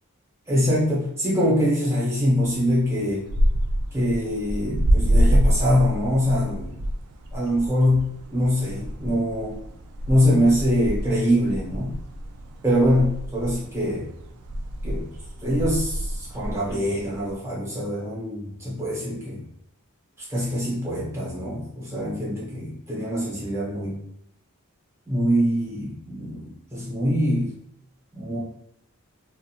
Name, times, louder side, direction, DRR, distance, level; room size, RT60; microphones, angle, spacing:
voice 1, 0.5-3.2 3.9-6.8 7.3-9.6 10.1-12.0 12.6-14.1 14.8-15.1 15.4-19.4 20.3-24.0 25.1-27.5 28.1-28.4, equal, 10° right, -7 dB, 0.9 m, -24 dB
sound 1, 2.4-17.3, equal, 90° right, 0.4 m, -27 dB
2.9 x 2.4 x 2.4 m, 0.75 s
head